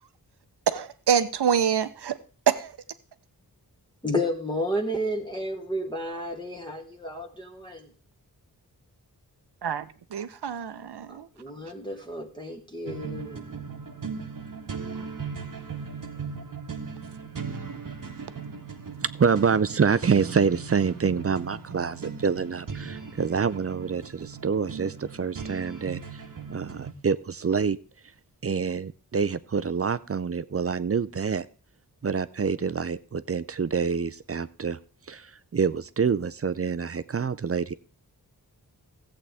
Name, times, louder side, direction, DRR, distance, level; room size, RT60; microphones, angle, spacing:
voice 1, 0.7-2.2 2.5-2.7 9.6-9.8 10.1-11.3, right 8 dB, 80° right, 0.8 m, -25 dB
voice 2, 4.0-7.9 11.1-13.5, equal, 10° left, 1.3 m, -32 dB
sound 1, 12.9-26.9, right 5 dB, 55° right, 1.1 m, -38 dB
voice 3, 19.2-26.2 26.5-27.8 28.4-31.5 32.0-34.8 35.1-37.7, right 6 dB, 40° right, 0.5 m, -26 dB
14.5 x 7.8 x 3.5 m
wide cardioid pair, 55°, 39 cm